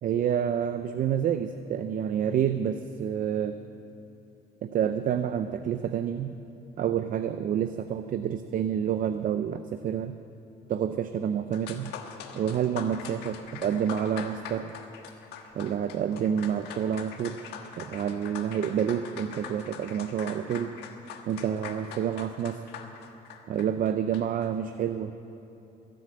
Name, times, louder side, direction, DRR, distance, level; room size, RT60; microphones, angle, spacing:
voice 1, 0.0-3.6 4.6-6.4 6.8-10.1 10.7-11.9 12.3-14.7 15.5-17.4 17.8-20.7 21.3-22.6 23.5-25.2, right 8 dB, 55° right, 9 dB, 0.6 m, -28 dB
sound 1, 11.5-24.5, left 7 dB, 85° left, 1.4 m, -43 dB
21.0 x 7.9 x 8.7 m, 2.9 s
cardioid pair, 110°, 17 cm